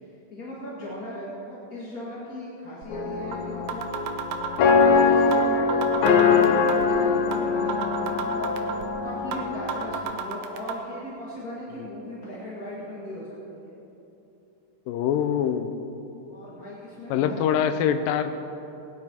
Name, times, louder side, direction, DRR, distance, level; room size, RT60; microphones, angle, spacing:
voice 1, 0.3-3.9 4.6-8.5 9.0-13.7 16.3-17.4, left 1 dB, 35° left, -7 dB, 1.6 m, -38 dB
sound 1, 2.8-2.9 3.3-3.4 3.7-4.9 5.3-5.4 5.7-6.9 7.3-7.4 7.7-8.9 9.3-9.4 9.7-10.7, right 8 dB, 70° right, 2.2 m, -31 dB
sound 2, 2.9-10.0, left 5 dB, 70° left, 1.9 m, -22 dB
voice 2, 14.9-15.8 17.1-18.4, left 8 dB, 85° left, 9 dB, 2.4 m, -24 dB
19.5 x 9.8 x 4.4 m, 2.9 s
omnidirectional pair, 3.9 m